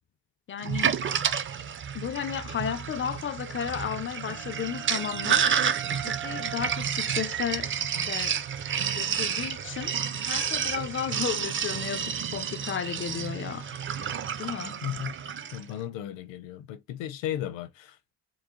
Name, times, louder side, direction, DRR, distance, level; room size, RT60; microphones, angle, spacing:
voice 1, 0.5-1.0 1.9-5.5 6.0-8.4 8.9-10.0 10.3-13.7 14.4-14.8, left 8 dB, 30° left, 0.4 m, -34 dB
Sink (filling or washing), 0.6-15.6, right 7 dB, 30° right, 0.4 m, -30 dB
sound 1, 3.8-9.3, right 13 dB, 75° right, 1.5 m, -42 dB
voice 2, 14.8-15.1 15.5-18.1, left 11 dB, 75° left, 0.9 m, -35 dB
4.3 x 2.3 x 3.0 m
cardioid pair, 105°, 45 cm